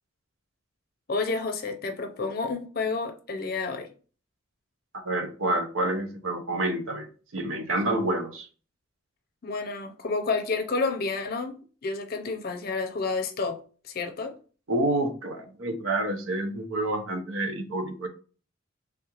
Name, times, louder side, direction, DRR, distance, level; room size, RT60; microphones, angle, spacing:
voice 1, 1.1-3.9 9.4-13.6 13.8-14.4, left 4 dB, 50° left, 0.5 m, -30 dB
voice 2, 5.1-8.5 14.7-18.1, right 1 dB, 90° right, 0.7 m, -28 dB
3.4 x 2.4 x 2.9 m
head